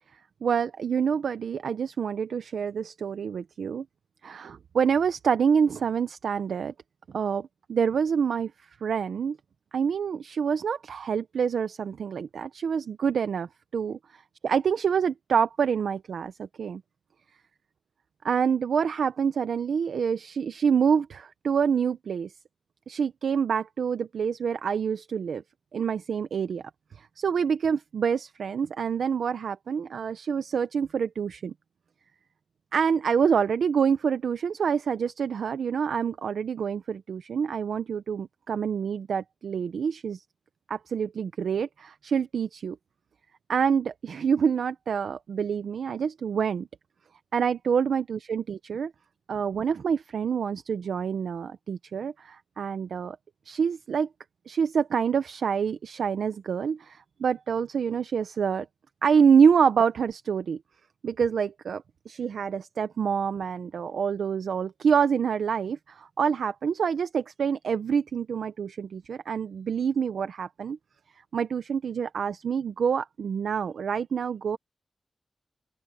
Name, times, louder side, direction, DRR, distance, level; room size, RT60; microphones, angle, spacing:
voice 1, 0.4-3.8 4.2-6.7 7.1-8.5 8.8-9.4 9.7-14.0 14.4-16.8 18.2-22.3 22.9-25.4 25.7-26.6 27.0-31.5 32.7-40.2 40.7-42.8 43.5-46.7 47.3-48.9 49.3-53.2 53.5-54.1 54.5-58.7 59.0-60.6 61.0-70.8 71.3-74.6, right 7 dB, 90° right, 0.7 m, -26 dB
open air
cardioid pair, 55°, 0 cm